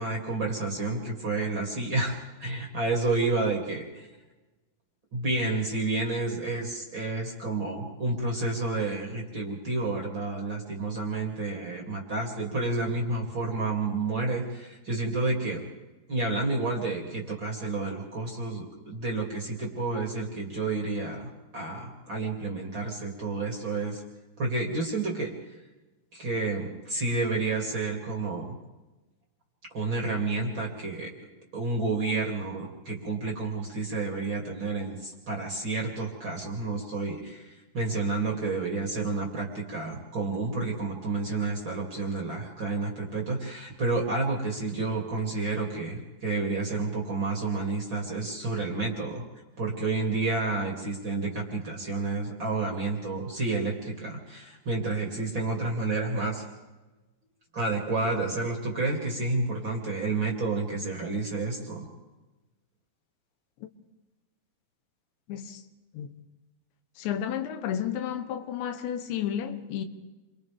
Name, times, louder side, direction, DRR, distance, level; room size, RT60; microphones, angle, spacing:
voice 1, 0.0-4.1 5.1-15.7 16.1-24.0 24.4-25.3 26.1-28.6 29.7-31.1 31.5-49.2 49.6-56.4 57.5-61.9, right 3 dB, 30° right, 2.8 m, -30 dB
voice 2, 65.3-65.6 65.9-66.1 67.0-69.9, left 9 dB, 80° left, 3.3 m, -32 dB
30.0 x 25.0 x 3.5 m
omnidirectional pair, 5.2 m